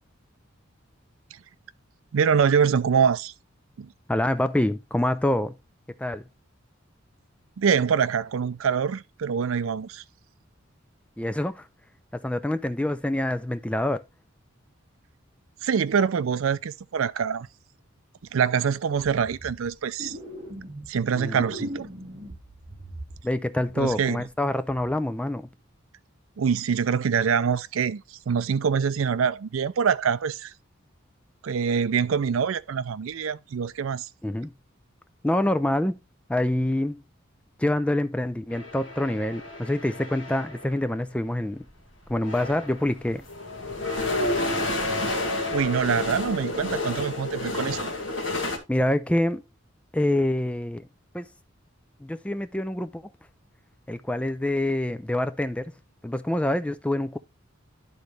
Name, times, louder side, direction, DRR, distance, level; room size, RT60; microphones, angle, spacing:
voice 1, 2.1-3.3 3.8-3.9 7.6-10.0 15.6-17.5 18.3-20.2 20.9-21.9 23.8-24.3 26.4-30.5 31.4-34.1 45.5-47.9, right 6 dB, 75° right, 0.4 m, -25 dB
voice 2, 4.1-5.5 6.0-6.2 11.2-11.7 12.1-14.0 21.2-21.7 23.2-25.5 34.2-34.5 35.2-35.9 36.3-37.0 37.6-41.6 42.1-43.3 48.7-49.4 49.9-50.9 51.1-51.3 52.0-53.0 53.9-55.7 56.0-57.2, left 1 dB, 5° left, 0.4 m, -26 dB
sound 1, 18.9-19.7 20.0-21.0 21.3-23.4 23.6-24.3 24.7-24.9, equal, 30° right, 2.8 m, -40 dB
sound 2, 38.5-40.7 41.7-41.8 42.1-48.6, left 2 dB, 65° left, 1.8 m, -30 dB
11.5 x 3.9 x 3.2 m
head